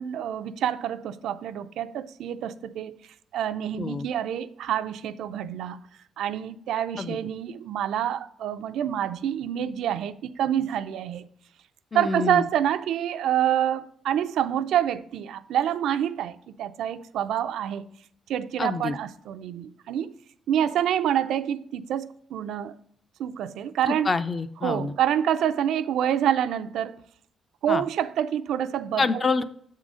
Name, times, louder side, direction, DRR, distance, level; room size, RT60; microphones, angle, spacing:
voice 1, 0.0-3.0 3.3-5.8 6.2-11.2 11.9-17.9 18.3-20.1 20.5-22.7 23.2-24.1 24.6-27.0 27.6-29.2, right 10 dB, 80° right, 0.4 m, -27 dB
voice 2, 11.9-12.5 18.6-19.0 23.9-24.9 27.7-27.8 29.0-29.4, left 4 dB, 20° left, 0.3 m, -27 dB
7.3 x 3.8 x 6.1 m
cardioid pair, 170°, 0 cm